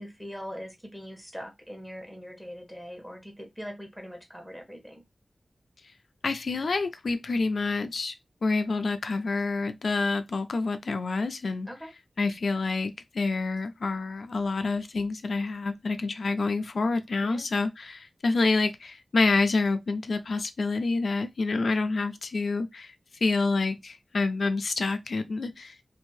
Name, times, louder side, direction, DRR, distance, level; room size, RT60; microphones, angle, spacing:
voice 1, 0.0-5.0 11.7-11.9 17.2-17.4, equal, 5° right, 1.1 m, -41 dB
voice 2, 6.2-8.1 8.4-11.7 12.2-22.9 23.2-25.8, left 3 dB, 80° left, 0.4 m, -27 dB
2.7 x 2.6 x 3.1 m
wide cardioid pair, 90°, 0 cm